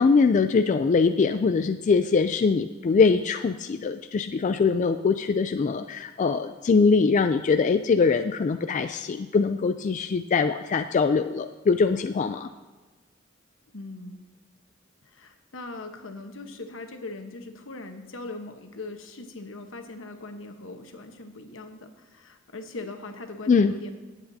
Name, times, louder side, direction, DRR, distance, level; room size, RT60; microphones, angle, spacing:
voice 1, 0.0-12.5 23.5-23.7, left 4 dB, 40° left, 8 dB, 0.3 m, -22 dB
voice 2, 13.7-14.2 15.0-23.9, left 2 dB, 80° left, 5 dB, 1.1 m, -40 dB
18.5 x 8.1 x 2.7 m, 1.3 s
head